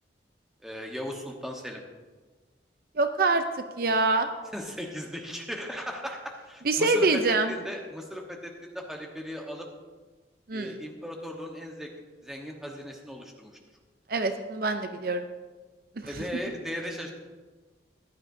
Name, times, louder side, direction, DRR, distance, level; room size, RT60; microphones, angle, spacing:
voice 1, 0.6-1.8 4.5-9.7 10.5-11.9 12.2-13.5 16.0-17.1, equal, 5° right, 0 dB, 1.1 m, -37 dB
voice 2, 3.0-3.4 3.8-4.3 6.6-7.5 10.5-10.8 14.1-15.2 16.0-16.1, right 3 dB, 55° right, 8 dB, 0.5 m, -25 dB
15.0 x 11.0 x 2.7 m, 1.4 s
head